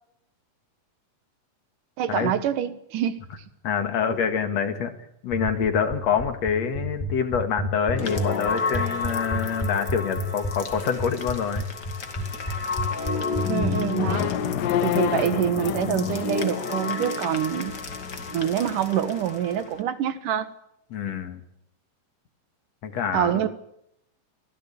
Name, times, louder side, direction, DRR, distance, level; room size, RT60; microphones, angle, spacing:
voice 1, 2.0-3.2 13.5-14.3 14.8-17.8 18.3-20.5 23.1-23.5, right 10 dB, 75° right, 12 dB, 2.8 m, -26 dB
voice 2, 3.6-4.9 5.2-11.7 20.9-21.4 22.8-23.4, left 7 dB, 55° left, 7 dB, 2.8 m, -26 dB
sound 1, 5.3-13.7, right 1 dB, 10° left, 1.2 m, -29 dB
sound 2, 7.9-19.8, left 5 dB, 35° left, 2.3 m, -31 dB
sound 3, 14.0-17.0, left 11 dB, 85° left, 2.7 m, -28 dB
24.5 x 16.5 x 8.6 m, 0.77 s
omnidirectional pair, 3.8 m